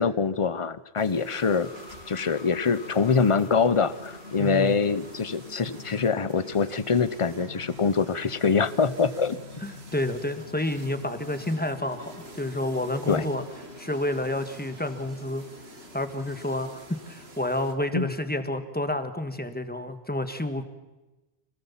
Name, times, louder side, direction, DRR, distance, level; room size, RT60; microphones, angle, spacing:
voice 1, 0.0-1.7 2.1-9.4 13.1-13.2 17.9-18.1, left 5 dB, 35° left, 15 dB, 0.8 m, -24 dB
sound 1, 1.0-17.7, right 3 dB, 85° right, 2.3 m, -49 dB
sound 2, 1.4-19.9, left 5 dB, 70° left, 1.2 m, -47 dB
voice 2, 4.4-4.8 9.6-13.4 13.8-15.4 15.9-16.8 17.1-20.6, left 1 dB, 10° left, 8 dB, 1.5 m, -29 dB
26.0 x 18.0 x 7.3 m, 1.1 s
omnidirectional pair, 1.0 m